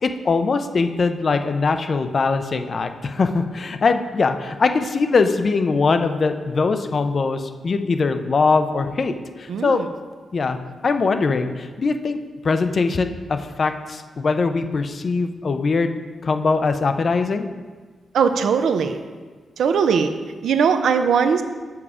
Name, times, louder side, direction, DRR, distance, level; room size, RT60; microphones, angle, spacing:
voice 1, 0.0-9.8 10.3-10.6 10.8-12.2 12.4-15.9 16.2-17.5, left 4 dB, 40° left, 8 dB, 0.5 m, -21 dB
voice 2, 9.5-9.9 18.1-19.0 19.6-20.1 20.4-21.4, right 6 dB, 75° right, 8 dB, 0.6 m, -19 dB
7.1 x 7.1 x 4.9 m, 1.4 s
wide cardioid pair, 150°, 0 cm